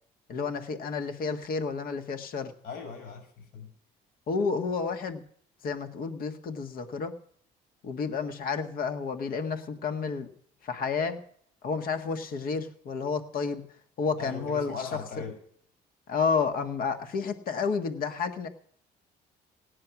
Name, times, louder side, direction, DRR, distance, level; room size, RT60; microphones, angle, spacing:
voice 1, 0.3-2.5 4.3-5.2 5.6-7.1 7.8-10.3 10.6-11.2 11.6-13.6 14.0-14.9 16.1-18.5, left 5 dB, 60° left, 8 dB, 1.5 m, -30 dB
voice 2, 2.6-3.7 14.2-15.4, left 5 dB, 75° left, 5 dB, 5.8 m, -39 dB
16.5 x 9.8 x 6.0 m, 0.63 s
cardioid pair, 110°, 17 cm